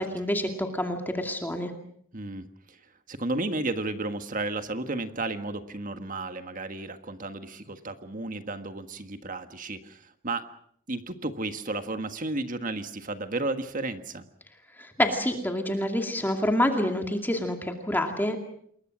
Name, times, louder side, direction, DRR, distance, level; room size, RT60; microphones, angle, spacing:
voice 1, 0.0-1.7 14.8-18.4, left 1 dB, 10° left, 4 dB, 2.4 m, -27 dB
voice 2, 2.1-2.8 3.1-10.5 10.9-14.3, right 2 dB, 40° right, 8 dB, 1.6 m, -33 dB
28.0 x 22.0 x 6.2 m, 0.66 s
head